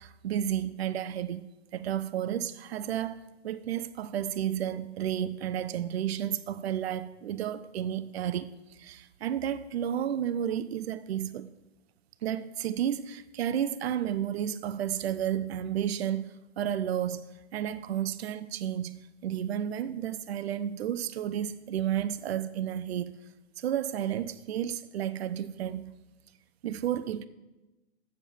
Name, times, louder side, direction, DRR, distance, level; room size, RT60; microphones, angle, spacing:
voice 1, 0.0-11.5 12.2-23.1 23.6-25.9 26.6-27.3, right 10 dB, 70° right, 0.6 m, -32 dB
7.7 x 7.2 x 7.1 m
figure-of-eight pair, 105°, 33 cm